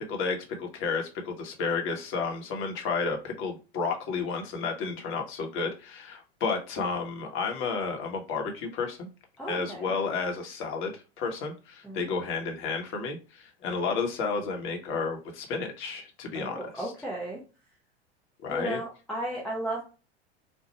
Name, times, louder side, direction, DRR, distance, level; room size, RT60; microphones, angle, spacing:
voice 1, 0.0-9.1 9.5-16.9 18.4-18.8, left 4 dB, 40° left, 2 dB, 1.2 m, -32 dB
voice 2, 9.4-9.9 11.8-12.0 16.3-17.4 18.5-19.8, right 1 dB, ahead, -5 dB, 0.9 m, -34 dB
4.3 x 2.3 x 2.9 m, 0.32 s
figure-of-eight pair, 85°, 32 cm